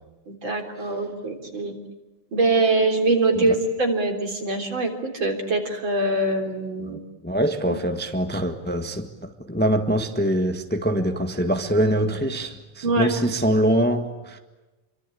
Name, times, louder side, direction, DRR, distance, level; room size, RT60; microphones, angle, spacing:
voice 1, 0.3-1.8 2.3-7.0 7.7-7.8 12.8-13.1, right 2 dB, 65° right, 4.3 m, -23 dB
voice 2, 6.8-14.4, right 1 dB, 5° left, 1.4 m, -24 dB
28.5 x 24.0 x 8.7 m
omnidirectional pair, 2.4 m